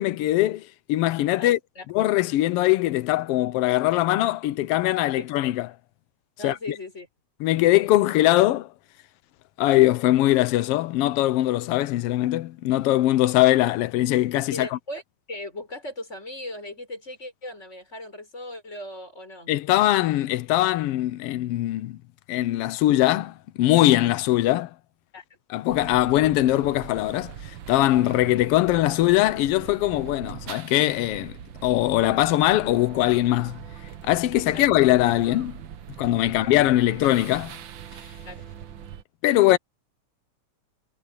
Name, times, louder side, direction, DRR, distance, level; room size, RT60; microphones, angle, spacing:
voice 1, 0.0-1.6 1.9-5.7 6.4-6.6 7.4-8.7 9.6-14.7 19.5-22.0 22.3-24.7 25.5-31.4 31.6-33.6 34.0-35.5 36.0-37.6 39.2-39.6, left 15 dB, 85° left, 1.3 m, -21 dB
voice 2, 1.4-1.9 5.2-5.3 6.4-7.1 14.5-15.0 15.3-19.5 25.1-25.2 34.5-34.7 36.3-36.5 38.2-38.4, left 1 dB, 20° left, 6.0 m, -37 dB
sound 1, 25.7-39.0, right 9 dB, 65° right, 1.2 m, -41 dB
omnidirectional pair, 3.4 m